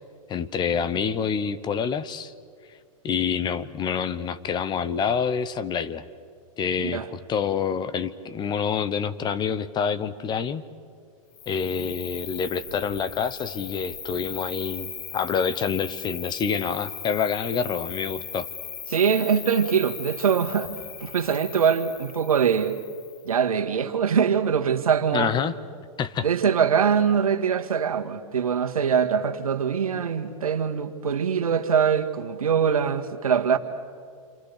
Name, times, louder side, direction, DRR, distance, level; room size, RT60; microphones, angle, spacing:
voice 1, 0.3-2.3 3.0-6.0 6.6-10.6 11.5-18.5 25.1-25.5 26.0-26.2, left 6 dB, 25° left, 1.0 m, -27 dB
Cricket, 11.3-23.3, left 7 dB, 50° left, 3.7 m, -38 dB
voice 2, 18.9-20.7 21.0-22.8 23.2-25.3 26.2-33.6, right 7 dB, 85° right, 1.9 m, -23 dB
28.0 x 27.0 x 6.8 m
hypercardioid pair, 120°, 18 cm